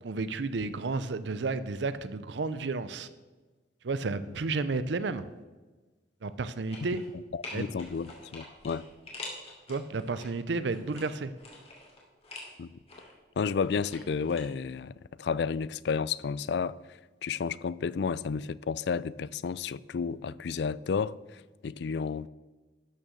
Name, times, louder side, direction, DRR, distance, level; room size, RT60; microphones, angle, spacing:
voice 1, 0.0-3.1 3.8-5.2 6.2-7.0 7.5-7.6 9.7-11.3, right 3 dB, 70° right, 0.5 m, -32 dB
sound 1, 6.7-7.1 7.4-10.3 10.7-12.5 12.9-14.4 14.7-14.8, left 2 dB, 35° left, 2.8 m, -45 dB
voice 2, 7.3-8.9 12.6-12.7 13.4-16.8 17.2-22.3, left 5 dB, 65° left, 0.3 m, -32 dB
12.5 x 6.5 x 6.3 m
head